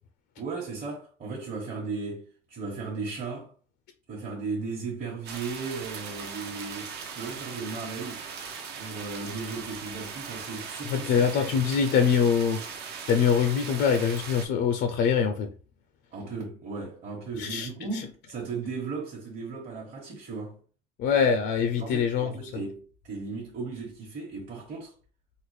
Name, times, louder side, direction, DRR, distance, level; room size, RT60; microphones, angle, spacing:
voice 1, 0.4-3.5 4.1-8.3 8.7-11.3 11.7-11.8 16.1-20.6 21.8-24.9, right 4 dB, 40° right, 1.1 m, -36 dB
sound 1, 5.3-14.5, right 6 dB, 55° right, 0.6 m, -39 dB
voice 2, 10.9-12.6 13.1-15.5 17.4-18.0 21.0-22.6, left 7 dB, 60° left, 0.5 m, -24 dB
3.6 x 2.1 x 3.2 m
cardioid pair, 115°, 20 cm